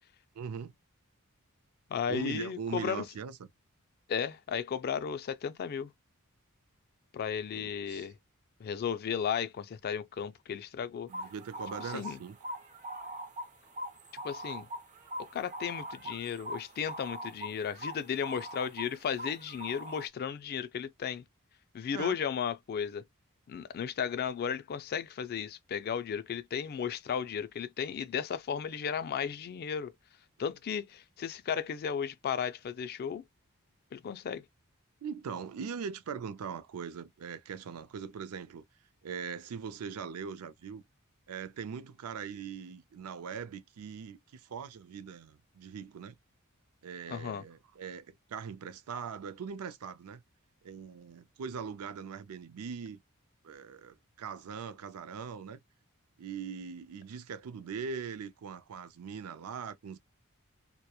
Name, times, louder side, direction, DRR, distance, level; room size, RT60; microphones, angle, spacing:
voice 1, 0.4-0.7 2.1-3.5 7.6-8.1 11.1-12.4 21.9-22.2 35.0-38.6 39.0-40.8 41.3-46.1 46.8-50.2 50.6-53.0 53.4-55.6 56.2-60.0, right 6 dB, 80° right, 0.4 m, -41 dB
voice 2, 1.9-3.1 4.1-5.9 7.1-8.2 8.6-11.1 11.8-12.2 14.2-14.7 15.2-21.2 21.7-23.0 23.5-29.9 30.4-33.2 33.9-34.5 47.1-47.4, left 7 dB, 45° left, 0.3 m, -35 dB
sound 1, 11.1-20.1, equal, 35° right, 0.7 m, -42 dB
2.9 x 2.1 x 2.2 m
head